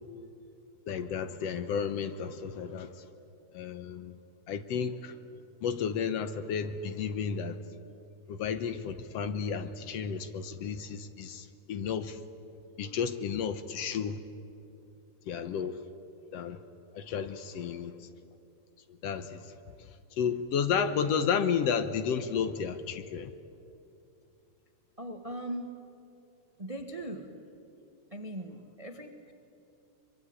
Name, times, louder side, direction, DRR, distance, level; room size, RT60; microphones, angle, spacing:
voice 1, 0.9-3.0 3.5-4.2 4.5-5.2 5.6-7.6 8.3-12.2 12.8-14.2 15.3-15.8 16.3-16.6 16.9-18.1 19.0-23.3, left 7 dB, 70° left, 11 dB, 1.8 m, -32 dB
voice 2, 25.0-25.7 26.6-27.3 28.1-29.3, right 1 dB, 35° right, 6 dB, 0.5 m, -39 dB
24.0 x 23.0 x 9.6 m, 2.7 s
omnidirectional pair, 3.4 m